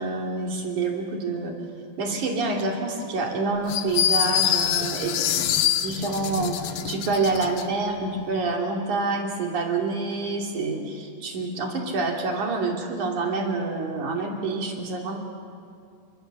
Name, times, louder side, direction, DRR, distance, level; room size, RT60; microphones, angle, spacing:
voice 1, 0.0-1.5 2.0-5.4 5.8-15.2, right 3 dB, 60° right, 1 dB, 4.3 m, -27 dB
sound 1, 3.7-7.7, left 10 dB, 70° left, 1.5 m, -25 dB
29.0 x 25.0 x 7.3 m, 2.4 s
omnidirectional pair, 4.1 m